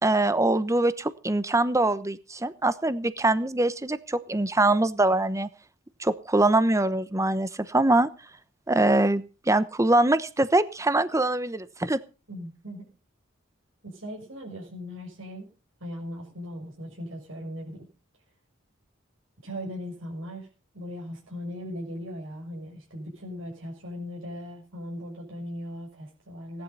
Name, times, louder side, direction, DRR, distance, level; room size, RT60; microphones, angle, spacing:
voice 1, 0.0-5.5 6.0-8.1 8.7-12.0, right 2 dB, 15° right, 15 dB, 1.0 m, -23 dB
voice 2, 12.3-12.9 13.8-15.5 15.8-17.9 19.4-26.6, equal, 85° right, -2 dB, 6.6 m, -38 dB
18.0 x 11.5 x 5.6 m, 0.34 s
head